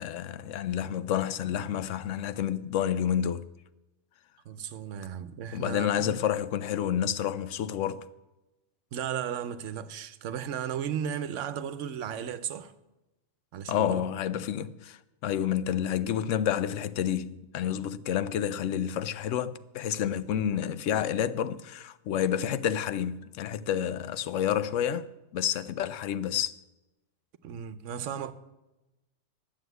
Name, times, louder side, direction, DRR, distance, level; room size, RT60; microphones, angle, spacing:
voice 1, 0.0-3.5 5.5-8.1 13.7-26.6, left 9 dB, 85° left, 0.9 m, -29 dB
voice 2, 4.5-6.2 8.9-12.7 13.5-14.0 27.4-28.3, right 8 dB, 80° right, 1.0 m, -35 dB
11.0 x 7.1 x 8.0 m
omnidirectional pair, 1.3 m